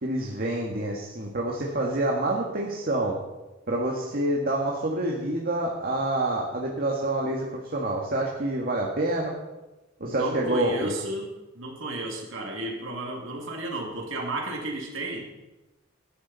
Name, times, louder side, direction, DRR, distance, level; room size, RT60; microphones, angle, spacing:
voice 1, 0.0-3.2 3.7-9.3 10.0-10.9, right 1 dB, 45° right, -1 dB, 1.7 m, -27 dB
voice 2, 10.0-15.3, right 2 dB, 65° right, 0 dB, 2.4 m, -33 dB
18.5 x 11.0 x 4.1 m, 1.1 s
head